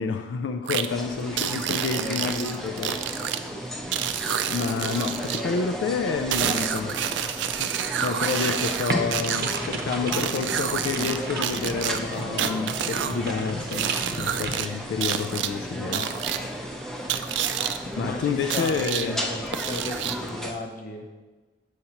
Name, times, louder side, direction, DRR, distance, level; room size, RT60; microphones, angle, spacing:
voice 1, 0.0-3.1 4.5-7.0 7.6-7.7 8.0-13.9 14.2-16.1 17.8-19.3, left 5 dB, 80° left, 0.3 m, -29 dB
sound 1, 0.7-0.9 1.4-3.4 3.9-5.4 6.3-9.6 10.1-11.2 11.4-13.2 13.7-14.7 15.0-15.5 15.9-16.4 17.1-17.8 18.5-19.1 19.5-20.3, right 9 dB, 75° right, 0.3 m, -28 dB
sound 2, 0.9-20.5, equal, ahead, 0.5 m, -35 dB
voice 2, 1.8-2.2 5.2-5.8 6.4-7.0 15.7-16.5 18.0-21.1, left 2 dB, 45° left, 0.7 m, -36 dB
sound 3, 8.9-14.5, right 2 dB, 55° right, 0.7 m, -33 dB
6.9 x 6.4 x 2.9 m
head